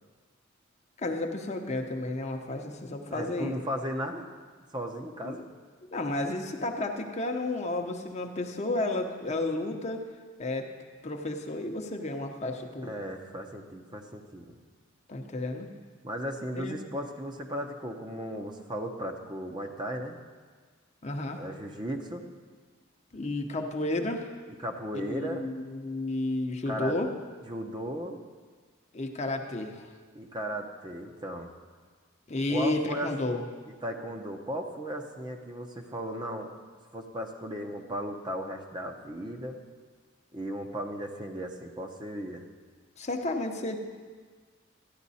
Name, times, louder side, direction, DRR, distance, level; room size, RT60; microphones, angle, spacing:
voice 1, 1.0-3.6 5.2-5.4 5.9-10.0 10.4-10.7 11.0-12.9 15.1-15.7 16.6-16.9 21.0-21.4 23.1-24.3 24.9-27.1 28.9-29.9 32.3-33.4 43.0-43.8, left 2 dB, 35° left, 3 dB, 0.8 m, -32 dB
voice 2, 3.1-4.3 4.7-5.4 12.8-14.6 16.0-20.2 21.4-22.2 24.6-25.5 26.7-26.9 27.5-28.2 30.1-31.5 32.5-33.1 33.8-36.5 36.9-39.6 40.3-42.4, equal, 25° right, 3 dB, 0.8 m, -36 dB
13.5 x 10.5 x 4.2 m, 1.5 s
head